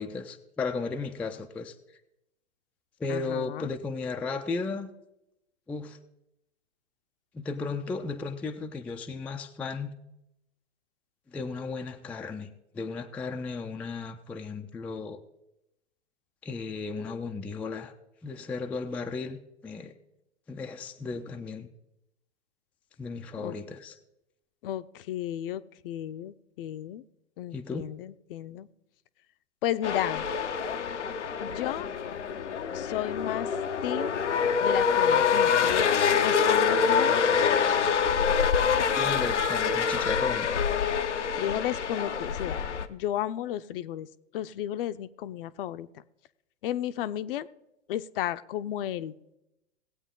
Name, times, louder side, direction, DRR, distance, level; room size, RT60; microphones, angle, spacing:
voice 1, 0.0-1.7 3.0-4.9 5.7-6.0 7.3-9.9 11.3-15.2 16.4-17.9 18.2-19.9 20.5-21.7 23.0-24.0 27.5-27.8 38.9-40.5, left 4 dB, 5° left, 5 dB, 0.3 m, -35 dB
voice 2, 3.1-3.7 23.4-23.6 24.6-27.0 27.4-28.7 29.6-30.3 31.4-31.9 32.7-33.5 33.8-34.2 34.6-37.2 41.4-44.1 44.3-45.9 46.6-47.5 47.9-49.1, left 12 dB, 55° left, 13 dB, 0.6 m, -33 dB
sound 1, 29.8-42.9, left 6 dB, 90° left, 0.8 m, -26 dB
18.5 x 8.0 x 3.8 m, 0.88 s
hypercardioid pair, 105°, 34 cm